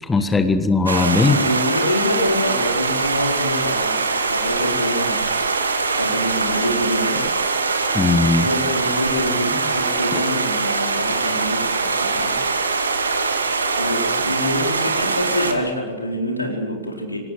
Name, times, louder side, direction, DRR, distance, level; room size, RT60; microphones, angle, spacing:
voice 1, 0.0-1.4 7.9-8.5 10.1-10.2, left 3 dB, 15° left, 10 dB, 1.5 m, -18 dB
small river, 0.9-15.5, right 4 dB, 75° right, 2.3 m, -22 dB
voice 2, 1.2-4.0 4.3-5.2 5.5-7.4 8.2-12.4 13.8-17.2, left 1 dB, 85° left, 2 dB, 4.3 m, -26 dB
25.5 x 18.5 x 7.8 m, 1.3 s
figure-of-eight pair, 90°, 0 cm